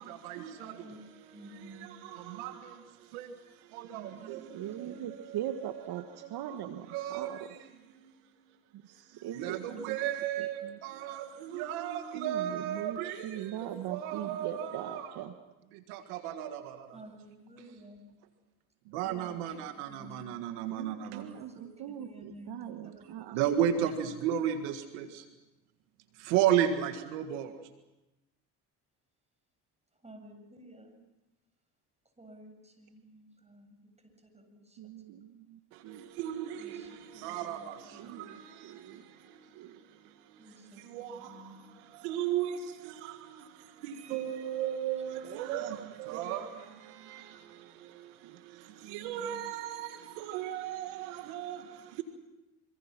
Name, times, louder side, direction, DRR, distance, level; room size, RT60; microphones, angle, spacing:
voice 1, 0.0-1.0 1.6-5.4 6.5-6.6 6.9-7.4 8.0-8.1 8.5-8.6 8.9-15.1 15.7-17.0 18.9-21.4 23.3-25.3 26.1-27.6 35.7-52.0, right 10 dB, 90° right, 1.8 m, -35 dB
voice 2, 0.6-1.0 1.3-1.9 4.2-5.0 16.9-18.2 19.0-20.3 21.3-23.1 23.8-23.9 29.9-31.0 32.2-35.0 36.6-38.5 38.9-39.1 40.4-41.9, right 1 dB, 15° right, 7.7 m, -53 dB
voice 3, 3.9-4.2 4.5-7.5 8.7-10.0 10.4-10.8 12.1-15.4 18.9-19.3 20.7-23.4 34.8-36.1 37.9-39.0 39.5-39.8 48.2-49.5, right 11 dB, 70° right, 1.5 m, -41 dB
26.0 x 25.5 x 6.0 m
supercardioid pair, 70°, 39 cm